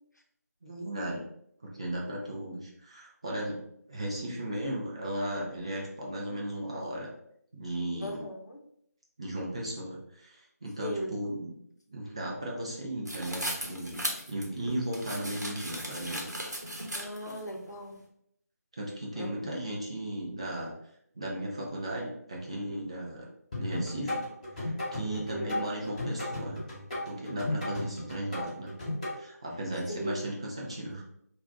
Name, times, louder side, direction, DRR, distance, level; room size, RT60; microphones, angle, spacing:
voice 1, 0.6-1.2 1.6-3.6 3.9-7.1 7.5-8.2 9.2-11.5 11.9-16.2 18.8-20.7 21.1-23.3 23.5-24.2 24.6-26.6 27.0-28.7 29.2-31.0, right 1 dB, 20° right, -3 dB, 0.4 m, -36 dB
voice 2, 8.0-8.6 10.8-11.2 16.9-18.0 19.1-19.5 25.0-25.6 29.9-30.2, equal, 85° left, 1 dB, 0.7 m, -38 dB
sound 1, 13.0-17.4, right 1 dB, 90° right, 0.8 m, -37 dB
sound 2, 23.5-29.1, left 1 dB, 25° left, 1.0 m, -35 dB
2.4 x 2.2 x 3.7 m, 0.72 s
figure-of-eight pair, 160°, 9 cm